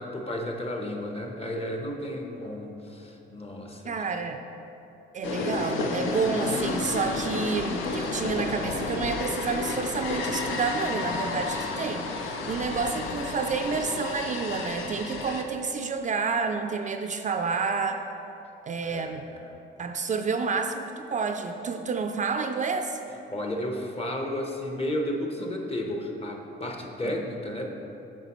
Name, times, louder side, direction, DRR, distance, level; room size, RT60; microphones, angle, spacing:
voice 1, 0.0-3.9 12.4-12.6 18.9-19.4 23.3-27.7, left 1 dB, 30° left, 2 dB, 0.9 m, -33 dB
voice 2, 3.9-4.4 5.1-18.0 18.7-19.3 19.8-23.0 27.0-27.1, right 5 dB, 40° right, 6 dB, 0.4 m, -29 dB
sound 1, 5.2-15.4, left 3 dB, 85° left, 0.6 m, -31 dB
9.0 x 6.0 x 3.0 m, 2.8 s
cardioid pair, 90°, 20 cm